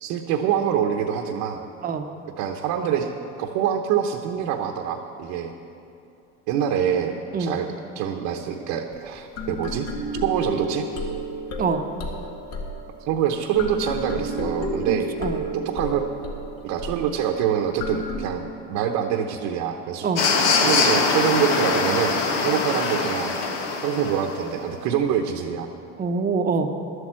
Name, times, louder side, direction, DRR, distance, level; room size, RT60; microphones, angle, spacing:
voice 1, 0.0-1.6 2.4-3.1 3.4-5.5 6.5-7.7 7.9-9.9 10.2-10.9 13.0-15.1 15.5-16.1 16.6-20.1 20.6-22.2 22.4-23.4 23.8-25.7, right 8 dB, 60° right, 4 dB, 1.0 m, -25 dB
sound 1, 8.9-9.0 9.4-18.3, equal, 55° left, 2.0 m, -32 dB
voice 2, 14.9-15.4 20.0-20.3 26.0-26.7, right 5 dB, 25° right, 7 dB, 0.9 m, -25 dB
summer atmosphere, 20.1-24.3, left 4 dB, 75° left, 1.8 m, -22 dB
12.0 x 8.2 x 7.5 m, 2.7 s
supercardioid pair, 130°, 33 cm